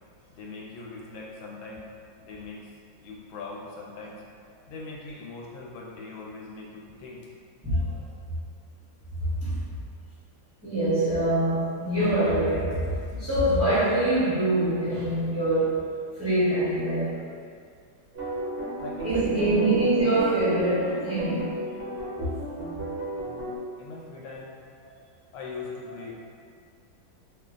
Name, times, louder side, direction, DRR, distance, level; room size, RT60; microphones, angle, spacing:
voice 1, 0.3-1.9 2.2-2.7 3.0-4.2 4.7-7.3 18.8-19.8 23.2-23.5 23.8-24.6 25.3-26.1, left 3 dB, 85° left, -2 dB, 1.4 m, -41 dB
voice 2, 9.2-9.6 10.6-15.8 16.2-17.2 19.0-21.6, right 1 dB, 10° right, -13 dB, 0.7 m, -24 dB
sound 1, 18.1-23.6, right 2 dB, 50° right, 0.7 m, -33 dB
3.0 x 2.4 x 3.7 m, 2.2 s
omnidirectional pair, 2.1 m